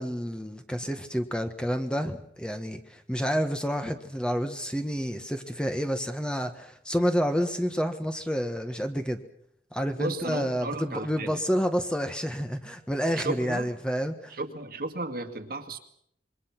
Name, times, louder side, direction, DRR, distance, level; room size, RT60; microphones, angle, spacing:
voice 1, 0.0-9.2 9.7-14.3, equal, 5° left, 1.4 m, -29 dB
voice 2, 10.0-11.4 13.2-13.7 14.3-15.8, right 2 dB, 60° right, 2.1 m, -34 dB
27.0 x 23.0 x 6.0 m
head